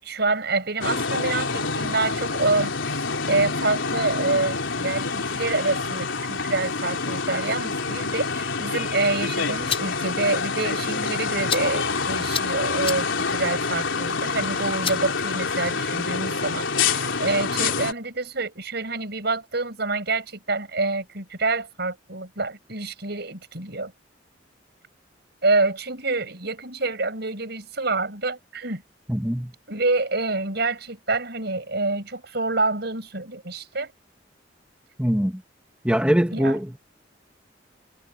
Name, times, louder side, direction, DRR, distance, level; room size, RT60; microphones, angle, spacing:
voice 1, 0.0-23.9 25.4-28.8 29.7-33.9 36.3-36.6, right 3 dB, 60° right, 7.2 m, -27 dB
sound 1, 0.8-17.9, left 4 dB, 85° left, 3.6 m, -27 dB
sound 2, 9.4-15.9, left 7 dB, 30° left, 5.2 m, -36 dB
voice 2, 29.1-29.5 35.0-35.4 35.8-36.8, equal, 5° right, 2.1 m, -22 dB
head